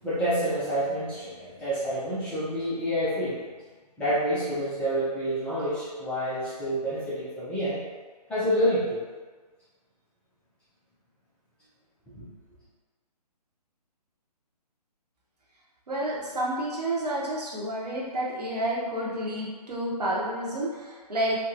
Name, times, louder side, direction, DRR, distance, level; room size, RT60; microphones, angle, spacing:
voice 1, 0.0-3.4 4.0-7.8 8.3-9.1 12.1-12.2, equal, 5° left, -13 dB, 0.5 m, -28 dB
voice 2, 15.9-21.4, right 1 dB, 70° right, -5 dB, 1.0 m, -30 dB
3.4 x 2.2 x 2.8 m, 1.4 s
figure-of-eight pair, 145°, 21 cm